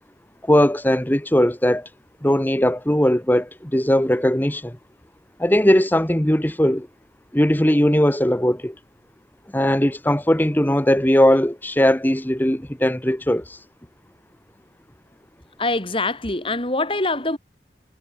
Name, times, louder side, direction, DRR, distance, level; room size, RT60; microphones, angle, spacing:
voice 1, 0.4-1.9 2.2-4.8 5.4-6.9 7.3-8.7 9.5-13.6, equal, 10° left, 1.2 m, -19 dB
voice 2, 15.6-17.4, left 2 dB, 30° left, 3.8 m, -24 dB
head